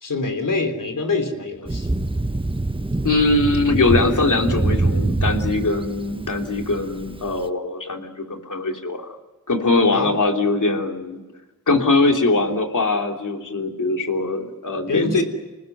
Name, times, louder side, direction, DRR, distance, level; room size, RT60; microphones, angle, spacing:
voice 1, 0.0-1.9 9.9-10.1 14.9-15.2, left 3 dB, 90° left, 5 dB, 3.6 m, -24 dB
Thunder, 1.7-7.4, right 2 dB, 15° right, 1.3 m, -24 dB
voice 2, 3.0-9.0 9.5-11.2 11.7-15.2, left 3 dB, 75° left, 2 dB, 3.3 m, -21 dB
27.5 x 19.5 x 9.4 m, 1.1 s
cardioid pair, 40°, 31 cm